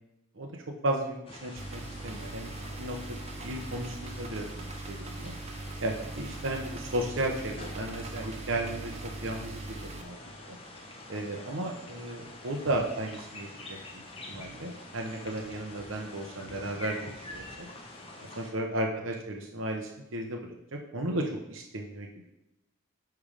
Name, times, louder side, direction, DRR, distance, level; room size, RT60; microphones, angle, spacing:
voice 1, 0.3-5.3 5.8-10.2 11.1-17.7 18.2-20.4 20.9-22.1, right 1 dB, 70° right, 1 dB, 0.9 m, -34 dB
sound 1, 1.3-18.5, left 2 dB, 25° left, 1.0 m, -46 dB
sound 2, 1.6-10.0, right 3 dB, 30° right, 0.6 m, -41 dB
8.4 x 3.5 x 5.1 m, 0.90 s
head